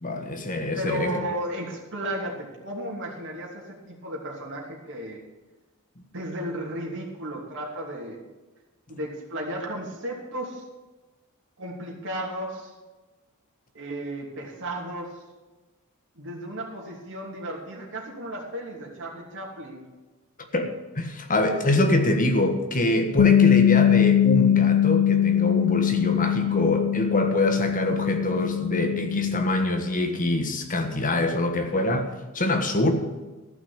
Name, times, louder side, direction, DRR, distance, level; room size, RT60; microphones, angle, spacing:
voice 1, 0.0-1.2 20.5-32.9, left 1 dB, 40° left, 5 dB, 1.5 m, -25 dB
voice 2, 0.7-5.2 6.1-8.2 8.9-10.6 11.6-12.7 13.7-15.2 16.1-19.8, right 1 dB, 60° right, -3 dB, 2.9 m, -34 dB
Bass guitar, 23.2-29.4, left 10 dB, 80° left, 0.3 m, -21 dB
14.0 x 6.1 x 8.8 m, 1.2 s
head